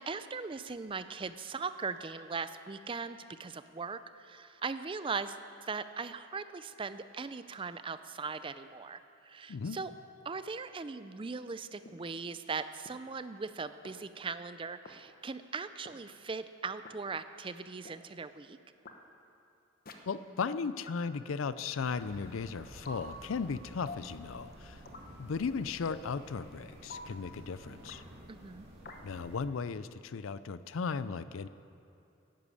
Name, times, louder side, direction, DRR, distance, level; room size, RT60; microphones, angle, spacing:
voice 1, 0.0-5.4 5.6-9.9 10.2-18.6 28.3-28.7, right 4 dB, 25° right, 12 dB, 0.4 m, -39 dB
sound 1, 11.8-11.9 12.9-13.0 13.8-13.9 14.8-14.9 15.8-15.9 16.8-16.9 17.8-17.9 18.8-18.9 19.9-20.0 20.9-21.0 21.9-22.0 22.8-23.1 23.9-24.1 24.9-25.1 25.8-26.1 26.9-27.1 27.9-28.0 28.8-29.0, left 3 dB, 45° left, 1.0 m, -46 dB
voice 2, 20.1-24.8 25.2-28.0 29.0-31.5, left 5 dB, 75° left, 15 dB, 0.5 m, -36 dB
sound 2, 21.9-29.4, right 1 dB, 50° right, 2.7 m, -52 dB
11.0 x 10.5 x 8.5 m, 2.6 s
head